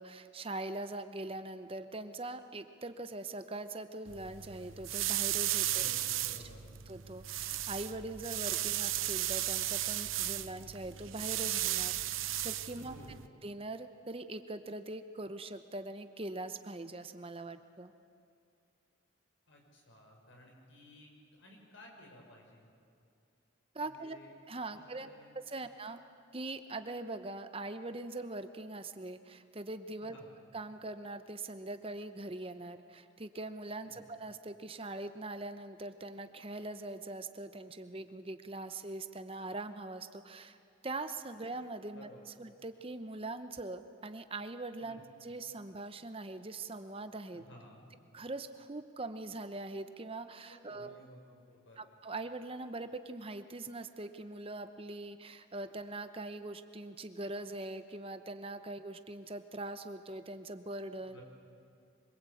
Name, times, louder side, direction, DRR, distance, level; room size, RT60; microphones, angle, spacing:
voice 1, 0.0-5.9 6.9-12.9 13.4-17.9 23.7-24.2 24.5-25.1 25.5-26.0 26.3-30.2 30.5-40.6 40.8-42.1 42.4-47.4 48.1-50.9 51.8-61.2, right 2 dB, 30° right, 9 dB, 0.9 m, -42 dB
sound 1, 4.1-13.3, right 13 dB, 90° right, 0.8 m, -35 dB
voice 2, 5.6-6.6 12.7-13.2 19.5-21.1 21.4-22.7 23.8-24.3 24.7-25.3 25.6-25.7 30.0-30.3 33.8-34.0 41.9-42.2 44.8-45.0 47.3-47.9 50.5-51.8 61.0-61.2, equal, 70° left, 0 dB, 6.5 m, -56 dB
25.0 x 23.0 x 8.6 m, 2.5 s
head